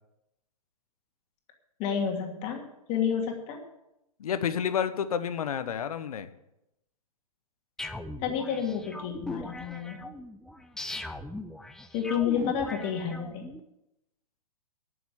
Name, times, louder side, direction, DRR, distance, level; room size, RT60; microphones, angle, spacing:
voice 1, 1.8-3.6 8.2-10.0 11.9-13.4, left 7 dB, 35° left, 1 dB, 2.6 m, -30 dB
voice 2, 4.2-6.3, left 8 dB, 70° left, 11 dB, 1.2 m, -30 dB
sound 1, 7.8-13.6, left 2 dB, 5° left, 0.6 m, -39 dB
12.0 x 7.2 x 9.2 m, 0.87 s
hypercardioid pair, 130°, 20 cm